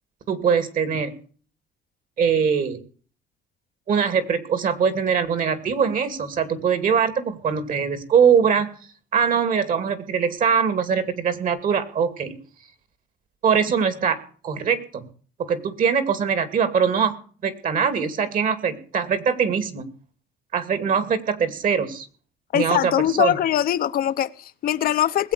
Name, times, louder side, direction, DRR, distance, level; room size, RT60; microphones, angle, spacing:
voice 1, 0.3-1.1 2.2-2.8 3.9-8.7 9.1-12.3 13.4-14.2 14.4-15.1 15.5-17.2 17.4-19.8 20.5-22.1 22.5-23.4, right 6 dB, 55° right, 13 dB, 2.5 m, -22 dB
voice 2, 22.5-25.3, left 11 dB, 60° left, 11 dB, 0.8 m, -22 dB
20.0 x 8.1 x 6.7 m, 0.43 s
cardioid pair, 110°, 17 cm